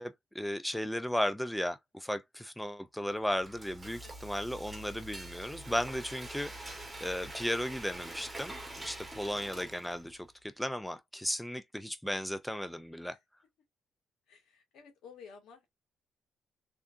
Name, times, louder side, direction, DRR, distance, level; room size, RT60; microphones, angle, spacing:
voice 1, 0.0-13.2, left 1 dB, 5° left, 0.5 m, -35 dB
Frying (food), 3.1-10.2, right 1 dB, 15° right, 1.5 m, -45 dB
voice 2, 4.0-4.4 6.7-7.0 13.1-13.2 14.3-15.7, left 6 dB, 80° left, 1.8 m, -55 dB
3.7 x 3.4 x 2.7 m
cardioid pair, 90°, 0 cm